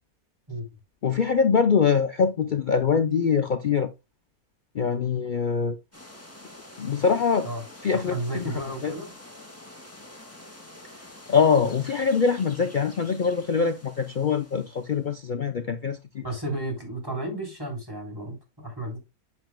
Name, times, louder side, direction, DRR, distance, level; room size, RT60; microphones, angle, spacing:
voice 1, 1.0-3.9 4.7-5.8 6.8-7.5 7.8-8.9 11.3-16.2, left 6 dB, 70° left, 0.4 m, -23 dB
sound 1, 5.9-15.1, left 1 dB, 10° left, 2.0 m, -47 dB
voice 2, 7.9-9.1 16.2-19.0, right 1 dB, 15° right, 3.6 m, -33 dB
9.0 x 7.2 x 2.2 m
omnidirectional pair, 1.6 m